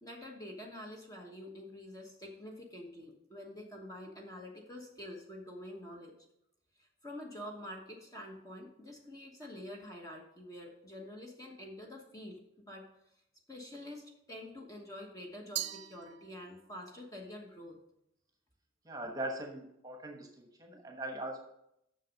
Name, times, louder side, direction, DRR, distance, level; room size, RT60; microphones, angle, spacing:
voice 1, 0.0-6.1 6.8-12.9 13.5-17.8, left 1 dB, 15° left, 0 dB, 1.1 m, -47 dB
Glass, 15.6-16.8, right 12 dB, 60° right, 0.4 m, -41 dB
voice 2, 18.8-21.4, right 1 dB, 20° right, 2 dB, 1.2 m, -41 dB
7.5 x 6.4 x 5.2 m, 0.78 s
head